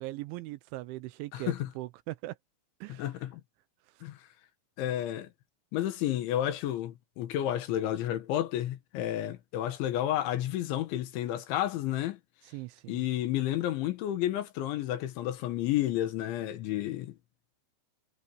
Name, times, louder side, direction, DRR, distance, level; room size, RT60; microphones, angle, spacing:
voice 1, 0.0-2.4 2.8-3.1 12.4-13.0, right 18 dB, 80° right, 2.9 m, -40 dB
voice 2, 1.3-1.7 2.9-3.4 4.0-4.2 4.8-5.3 5.7-12.2 12.9-17.2, left 12 dB, 75° left, 3.6 m, -31 dB
omnidirectional pair, 5.8 m